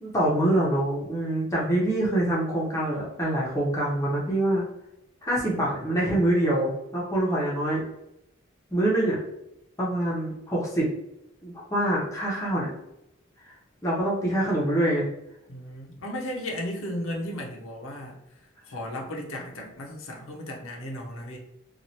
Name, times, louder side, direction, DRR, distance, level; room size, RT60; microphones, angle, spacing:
voice 1, 0.0-4.6 5.2-7.8 8.7-9.2 9.8-10.9 11.4-12.7 13.8-15.1, right 1 dB, 15° left, -5 dB, 0.7 m, -25 dB
voice 2, 15.5-18.2 18.7-21.4, left 1 dB, 90° left, 0 dB, 0.7 m, -35 dB
3.0 x 2.3 x 2.7 m, 0.84 s
head